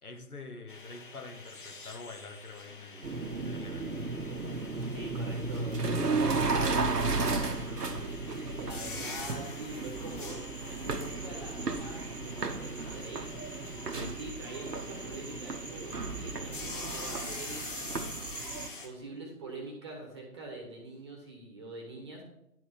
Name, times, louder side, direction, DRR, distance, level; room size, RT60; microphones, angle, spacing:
voice 1, 0.0-4.0 13.9-14.2, left 3 dB, 65° left, 6 dB, 1.3 m, -46 dB
sound 1, 0.7-18.9, left 3 dB, 30° left, 1.1 m, -46 dB
sound 2, 3.0-18.7, right 3 dB, 80° right, 1.0 m, -34 dB
voice 2, 4.9-10.4 10.8-13.2 13.9-18.1 18.8-22.2, right 2 dB, 15° right, 2 dB, 1.2 m, -45 dB
sound 3, 6.8-8.7, equal, 85° left, 1.8 m, -47 dB
10.5 x 4.7 x 6.0 m, 0.82 s
figure-of-eight pair, 145°, 47 cm